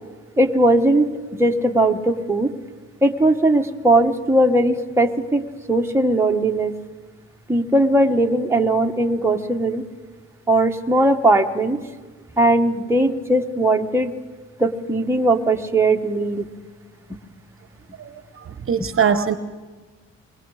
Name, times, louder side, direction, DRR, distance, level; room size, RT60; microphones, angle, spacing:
voice 1, 0.4-1.1 1.4-2.5 3.0-5.4 5.7-6.7 7.5-9.8 10.5-11.8 12.4-14.1 14.6-16.5, right 1 dB, 10° right, 2 dB, 1.4 m, -18 dB
voice 2, 18.0-19.4, right 7 dB, 45° right, 11 dB, 1.2 m, -22 dB
25.0 x 21.5 x 5.0 m, 1.4 s
cardioid pair, 90°, 30 cm